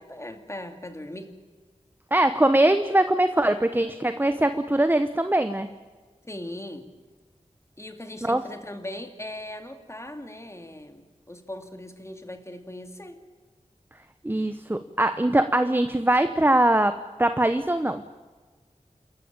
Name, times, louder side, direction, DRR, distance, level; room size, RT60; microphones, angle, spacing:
voice 1, 0.0-1.3 6.3-6.9 7.8-13.2, left 1 dB, 20° left, 6 dB, 2.6 m, -39 dB
voice 2, 2.1-5.7 8.2-8.4 14.2-18.0, right 1 dB, 15° right, 10 dB, 0.9 m, -22 dB
28.5 x 14.0 x 8.9 m, 1.4 s
wide cardioid pair, 75°, 13 cm